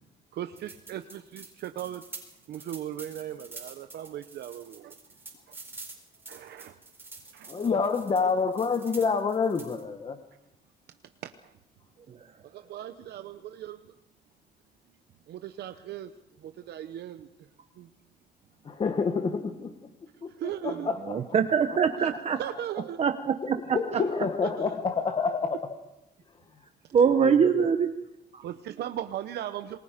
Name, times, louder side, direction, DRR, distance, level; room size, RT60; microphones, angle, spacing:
voice 1, 0.3-2.0 2.5-4.9 6.3-6.8 7.3-7.7 11.2-11.5 12.4-13.8 15.3-16.1 16.4-17.3 17.8-17.9 20.3-20.9 22.0-22.1 22.4-23.0 24.4-24.7 28.4-29.8, right 11 dB, 65° right, 8 dB, 0.8 m, -38 dB
sound 1, 0.6-9.8, right 3 dB, 10° right, 4.8 m, -47 dB
voice 2, 7.5-10.2 18.6-19.7 20.2-20.3 20.6-21.2 23.4-25.7 27.2-27.7, left 5 dB, 30° left, 7 dB, 1.3 m, -28 dB
voice 3, 21.0-22.4 23.0-24.0 26.9-27.9 28.3-28.4, right 7 dB, 35° right, 7 dB, 0.9 m, -24 dB
27.5 x 21.0 x 5.1 m, 0.89 s
cardioid pair, 160°, 18 cm